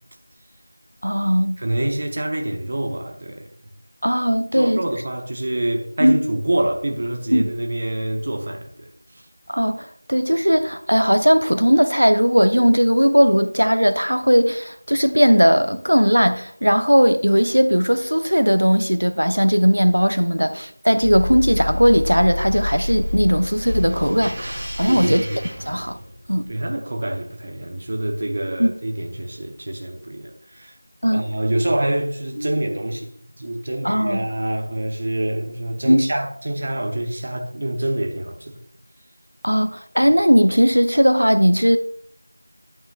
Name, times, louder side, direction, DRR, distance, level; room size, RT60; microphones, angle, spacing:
voice 1, 1.0-1.6 4.0-4.8 6.0-6.2 7.3-7.5 9.5-25.2 25.7-26.0 26.3-26.5 28.6-28.7 31.0-31.2 32.4-32.5 33.8-34.2 35.8-36.1 39.4-41.8, equal, 85° right, 0.8 m, -18 dB
voice 2, 1.6-3.5 4.5-8.9 20.4-20.5 24.9-25.4 26.5-30.8 31.1-33.1 33.4-38.6, right 1 dB, 25° right, 0.8 m, -26 dB
sound 1, 21.0-26.3, left 1 dB, 5° right, 1.3 m, -28 dB
11.5 x 8.8 x 2.3 m
figure-of-eight pair, 175°, 0 cm